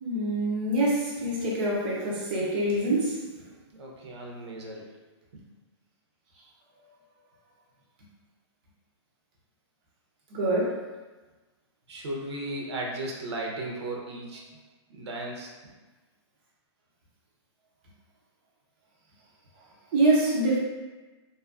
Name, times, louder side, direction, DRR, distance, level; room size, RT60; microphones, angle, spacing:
voice 1, 0.0-3.3 10.3-10.8 19.9-20.6, right 1 dB, 20° right, -4 dB, 0.4 m, -25 dB
voice 2, 3.7-4.9 5.3-5.4 11.9-14.4 14.9-15.7, right 1 dB, 70° right, -1 dB, 0.6 m, -36 dB
2.5 x 2.3 x 2.3 m, 1.2 s
hypercardioid pair, 175°, 15 cm